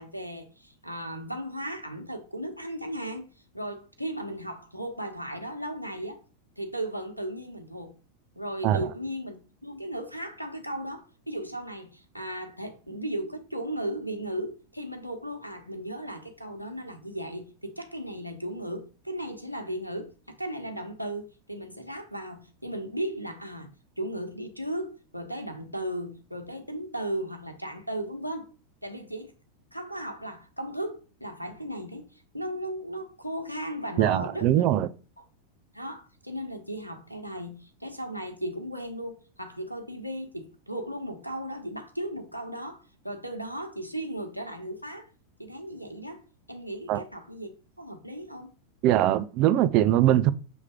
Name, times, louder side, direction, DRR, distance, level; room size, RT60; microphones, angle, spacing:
voice 1, 0.0-3.3 3.5-6.2 6.6-7.9 8.4-28.5 28.8-29.3 29.7-32.1 32.3-34.5 35.2-35.3 35.7-45.1 45.4-46.2 46.5-47.5 47.8-48.5, right 1 dB, 90° left, 1.1 m, -36 dB
voice 2, 34.0-34.9 46.9-47.0 48.8-50.3, right 13 dB, 40° right, 0.5 m, -22 dB
7.0 x 3.2 x 4.8 m
figure-of-eight pair, 90°, 0 cm